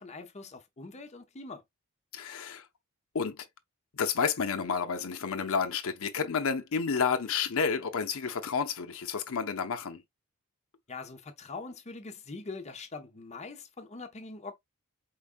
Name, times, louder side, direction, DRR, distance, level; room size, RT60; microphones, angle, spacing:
voice 1, 0.0-1.6 10.9-14.5, left 3 dB, 30° left, 0.8 m, -43 dB
voice 2, 2.1-2.7 3.1-3.5 3.9-10.0, left 6 dB, 65° left, 0.7 m, -30 dB
4.6 x 3.6 x 2.5 m
head